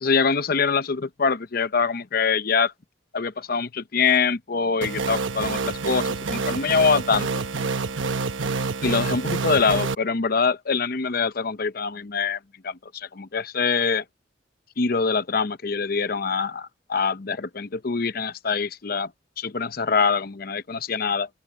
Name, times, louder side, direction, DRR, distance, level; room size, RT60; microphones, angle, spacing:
voice 1, 0.0-2.7 3.1-7.3 8.8-14.0 14.8-19.1 19.4-21.3, left 5 dB, 50° left, 0.7 m, -24 dB
sound 1, 4.8-9.9, right 4 dB, 80° right, 1.1 m, -27 dB
open air
head